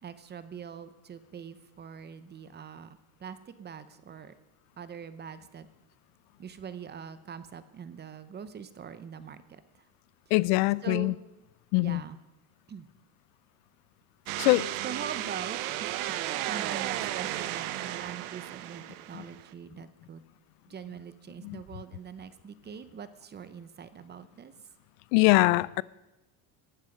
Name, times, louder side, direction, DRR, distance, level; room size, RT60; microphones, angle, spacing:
voice 1, 0.0-4.3 4.8-5.7 6.4-9.8 10.8-11.2 11.8-12.2 12.7-12.9 14.8-20.2 20.7-24.5, right 7 dB, 25° right, 0.8 m, -43 dB
voice 2, 10.3-11.1 11.7-12.0 14.4-14.7 19.1-19.2 21.4-21.6 25.1-25.8, left 22 dB, 75° left, 0.5 m, -23 dB
sound 1, 14.3-19.4, right 14 dB, 75° right, 1.1 m, -34 dB
18.5 x 11.5 x 5.2 m
cardioid pair, 140°, 44 cm